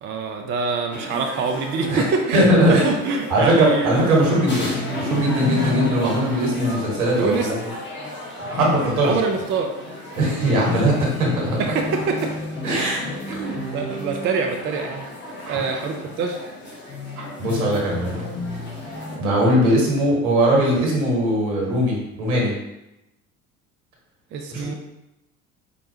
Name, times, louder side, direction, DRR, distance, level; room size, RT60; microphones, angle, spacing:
voice 1, 0.0-4.2 7.2-7.5 9.0-9.7 11.6-12.3 13.3-15.0 15.5-16.4 24.3-24.7, right 4 dB, 30° right, 3 dB, 0.4 m, -25 dB
sound 1, 0.9-19.2, left 2 dB, 25° left, 1.3 m, -31 dB
voice 2, 2.3-2.9 3.3-4.7 4.9-7.6 8.4-9.1 10.2-11.6 12.6-13.0 15.5-15.8 17.2-18.2 19.2-22.5 24.5-24.7, right 1 dB, 75° right, -3 dB, 1.4 m, -20 dB
4.9 x 2.2 x 2.8 m, 0.90 s
figure-of-eight pair, 60°, 44 cm